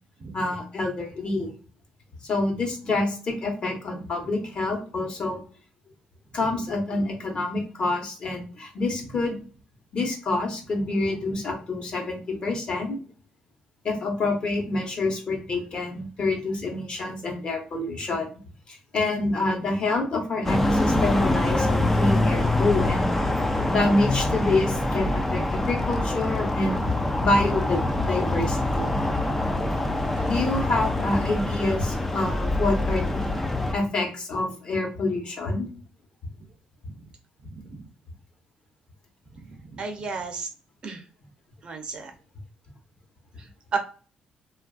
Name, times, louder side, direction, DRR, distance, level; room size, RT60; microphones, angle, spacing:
voice 1, 0.3-1.5 2.2-5.4 6.3-9.4 9.9-13.0 13.8-18.3 18.7-23.1 23.7-29.0 30.2-33.4 33.7-35.7, left 2 dB, 40° left, 2 dB, 1.0 m, -27 dB
sound 1, 20.4-33.7, left 2 dB, 10° left, 0.4 m, -25 dB
voice 2, 39.8-40.5 40.8-41.0 41.6-42.1 43.7-43.8, right 4 dB, 40° right, 4 dB, 0.6 m, -31 dB
3.0 x 2.4 x 2.3 m, 0.38 s
cardioid pair, 130°, 3 cm